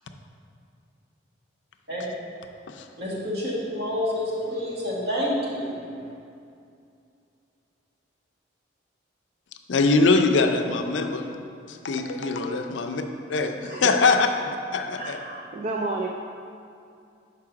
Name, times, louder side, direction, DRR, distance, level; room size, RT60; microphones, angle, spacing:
voice 1, 3.0-5.8, left 1 dB, 55° right, -6 dB, 1.5 m, -28 dB
voice 2, 9.7-11.3 11.7-13.0 13.3-14.3 14.7-15.2, left 3 dB, 70° left, 5 dB, 0.5 m, -22 dB
voice 3, 13.5-14.0 14.4-14.5 14.9-16.1, right 3 dB, 35° right, 1 dB, 0.3 m, -32 dB
4.8 x 4.7 x 5.8 m, 2.5 s
head